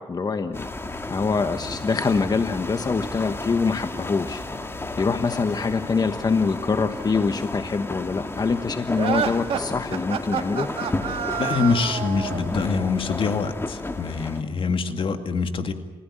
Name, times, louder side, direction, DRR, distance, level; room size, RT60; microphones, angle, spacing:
voice 1, 0.1-0.7 1.1-4.4 5.0-10.7, left 4 dB, 45° left, 9 dB, 1.2 m, -24 dB
sound 1, 0.5-14.4, left 2 dB, 25° left, 1.9 m, -33 dB
sound 2, 8.9-12.5, right 8 dB, 90° right, 1.6 m, -28 dB
voice 2, 11.4-15.7, left 4 dB, 65° left, 7 dB, 2.2 m, -25 dB
29.0 x 15.5 x 8.8 m, 1.1 s
cardioid pair, 75°, 10 cm